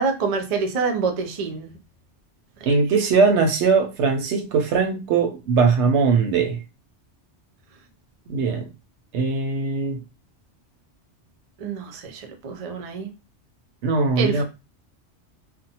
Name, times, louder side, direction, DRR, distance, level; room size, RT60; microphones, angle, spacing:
voice 1, 0.0-1.7 2.6-2.7 11.6-13.1 14.2-14.4, right 5 dB, 50° right, 0.4 m, -26 dB
voice 2, 2.7-6.6 8.3-8.6 9.1-10.0 13.8-14.4, right 4 dB, 75° right, 0.8 m, -20 dB
2.5 x 2.0 x 2.7 m
omnidirectional pair, 1.2 m